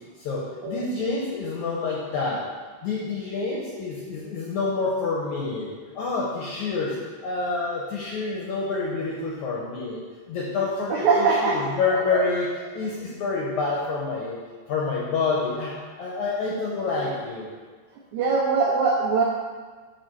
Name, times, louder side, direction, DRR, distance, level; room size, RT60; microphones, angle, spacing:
voice 1, 0.2-2.5 2.8-7.0 7.2-12.5 12.7-14.4 14.7-17.5, left 4 dB, 75° left, -4 dB, 1.7 m, -28 dB
voice 2, 10.9-11.6 11.9-12.2 18.1-19.2, right 4 dB, 90° right, -3 dB, 1.6 m, -22 dB
7.3 x 4.7 x 6.1 m, 1.4 s
omnidirectional pair, 4.5 m